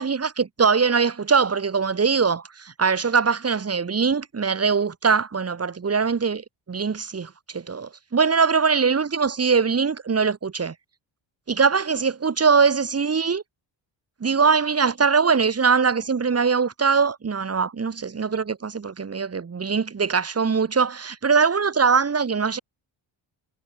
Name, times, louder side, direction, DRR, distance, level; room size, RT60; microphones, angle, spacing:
voice 1, 0.0-10.7 11.5-13.4 14.2-22.6, right 5 dB, 30° right, 1.9 m, -22 dB
cardioid pair, 85°, 47 cm